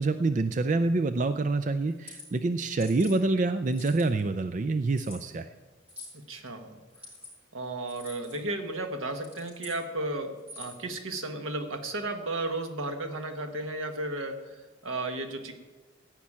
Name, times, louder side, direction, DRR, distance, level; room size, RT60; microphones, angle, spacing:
voice 1, 0.0-5.5, right 3 dB, 40° right, 9 dB, 0.4 m, -26 dB
sound 1, 1.9-2.3 2.8-3.1 3.7-4.2 4.9-5.2 5.9-6.2 6.9-7.3 7.9-8.4 9.1-9.8 10.4-10.8, left 2 dB, 5° right, 5.2 m, -46 dB
voice 2, 6.1-6.8 7.5-15.5, right 2 dB, 85° right, 5 dB, 1.4 m, -34 dB
14.5 x 5.9 x 8.7 m, 1.2 s
head